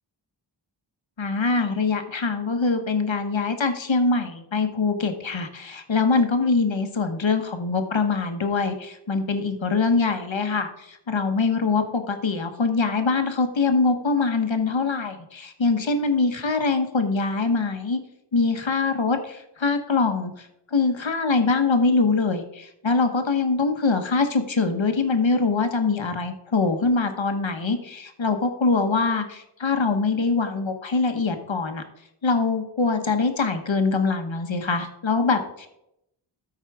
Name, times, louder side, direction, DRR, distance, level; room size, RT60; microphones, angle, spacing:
voice 1, 1.2-18.0 18.3-31.8 32.2-35.7, left 4 dB, 75° left, 7 dB, 1.2 m, -23 dB
13.0 x 4.8 x 4.7 m, 0.81 s
wide cardioid pair, 45°, 46 cm